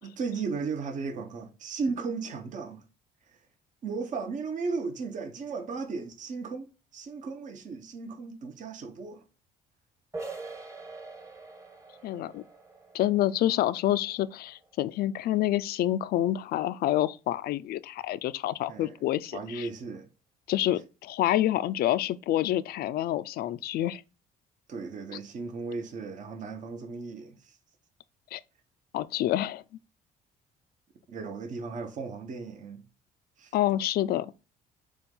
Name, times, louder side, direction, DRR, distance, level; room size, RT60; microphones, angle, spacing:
voice 1, 0.0-2.8 3.3-3.4 3.8-9.2 18.7-18.9 19.3-20.1 24.7-27.6 31.1-32.8 33.4-33.5, right 4 dB, 50° right, 1.1 m, -36 dB
sound 1, 10.1-15.6, right 3 dB, 15° right, 1.2 m, -45 dB
voice 2, 12.0-12.4 12.9-19.7 20.5-24.0 28.3-28.4 28.9-29.6 33.5-34.3, left 13 dB, 65° left, 0.5 m, -27 dB
6.9 x 2.5 x 5.4 m
cardioid pair, 110°, 17 cm